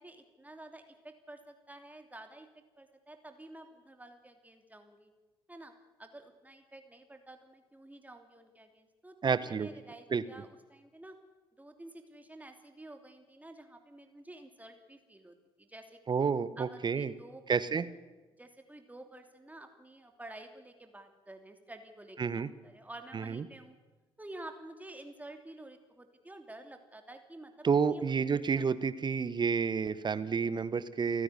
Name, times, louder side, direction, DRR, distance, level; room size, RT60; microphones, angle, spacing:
voice 1, 0.0-5.1 5.5-5.7 6.0-11.2 11.6-16.0 16.6-17.9 18.4-23.8 24.2-28.1 28.5-28.6, right 1 dB, 10° right, 6 dB, 2.8 m, -50 dB
voice 2, 9.2-9.7 10.1-10.2 16.1-17.1 17.5-17.8 22.2-22.5 23.1-23.4 27.6-31.2, right 6 dB, 35° right, 16 dB, 1.0 m, -30 dB
30.0 x 10.0 x 9.7 m, 1.2 s
hypercardioid pair, 45°, 12 cm